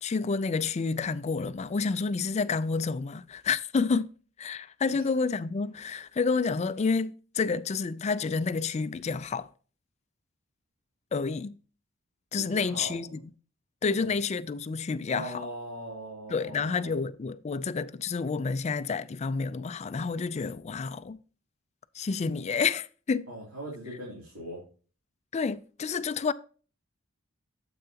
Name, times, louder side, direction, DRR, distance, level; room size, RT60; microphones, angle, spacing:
voice 1, 0.0-4.1 4.4-9.5 11.1-11.6 12.3-13.1 13.8-15.3 16.3-21.2 21.9-23.3 25.3-26.3, left 4 dB, 30° left, 0.4 m, -29 dB
voice 2, 12.4-13.2 14.0-14.1 15.1-17.0 23.3-24.6, equal, 85° right, 3.0 m, -40 dB
9.2 x 7.8 x 2.8 m
head